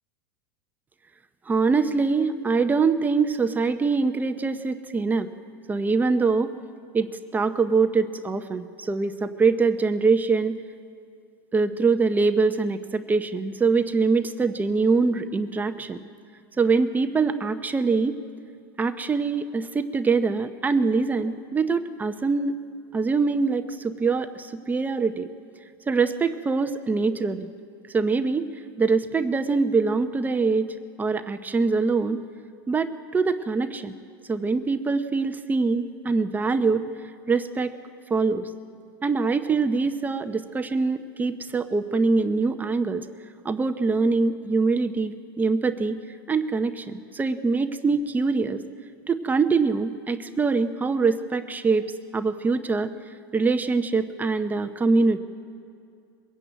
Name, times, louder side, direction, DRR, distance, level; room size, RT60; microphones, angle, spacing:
voice 1, 1.5-5.3 5.7-6.5 6.9-10.6 11.5-16.0 16.6-18.2 18.8-22.5 22.9-25.3 25.9-27.5 27.9-28.5 28.8-32.2 32.7-33.9 34.3-36.9 37.3-37.7 38.1-38.5 39.0-43.1 43.4-46.0 46.3-48.6 49.1-52.9 53.3-55.2, right 4 dB, 15° right, 8 dB, 0.7 m, -24 dB
22.0 x 16.0 x 9.0 m, 2.4 s
supercardioid pair, 140°, 13 cm